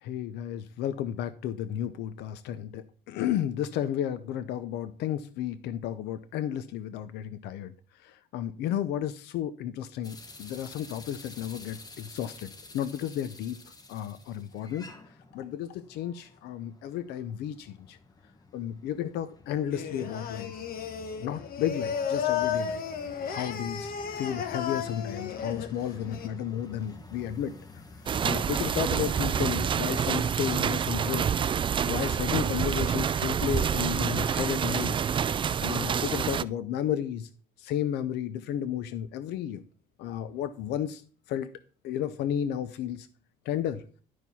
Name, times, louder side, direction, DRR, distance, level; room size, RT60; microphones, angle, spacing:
voice 1, 0.0-7.7 8.0-12.5 12.7-13.6 13.9-14.8 15.3-18.0 18.5-20.5 21.2-22.8 23.3-27.6 28.2-31.3 31.9-35.0 35.6-37.3 37.6-39.6 40.0-41.0 41.3-41.5 41.8-43.1 43.5-43.8, left 10 dB, 80° left, 0.6 m, -33 dB
sound 1, 10.0-29.5, left 3 dB, 20° left, 1.3 m, -49 dB
Singing, 19.7-26.3, left 7 dB, 60° left, 1.2 m, -33 dB
sound 2, 28.1-36.4, right 7 dB, 30° right, 0.4 m, -27 dB
11.5 x 4.7 x 5.5 m
cardioid pair, 110°, 17 cm